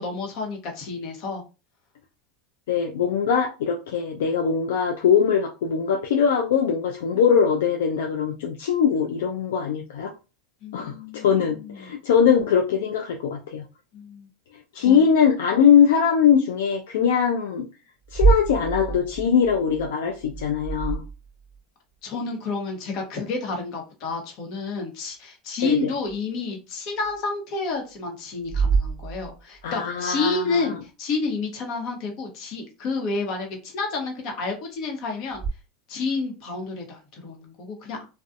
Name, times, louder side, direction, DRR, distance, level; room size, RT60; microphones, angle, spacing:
voice 1, 0.0-1.4 10.6-11.9 13.9-14.3 14.7-15.1 22.0-35.4 35.9-38.1, left 3 dB, 55° left, 1.0 m, -30 dB
voice 2, 2.7-10.1 10.7-13.6 14.8-17.7 18.1-21.0 25.6-25.8 29.6-30.6, left 7 dB, 80° left, 0.3 m, -21 dB
sound 1, 18.0-21.6 26.1-26.2 27.0-27.2 28.4-29.7 35.3-35.5, right 5 dB, 15° right, 1.0 m, -26 dB
2.4 x 2.2 x 2.4 m
hypercardioid pair, 95°, 0 cm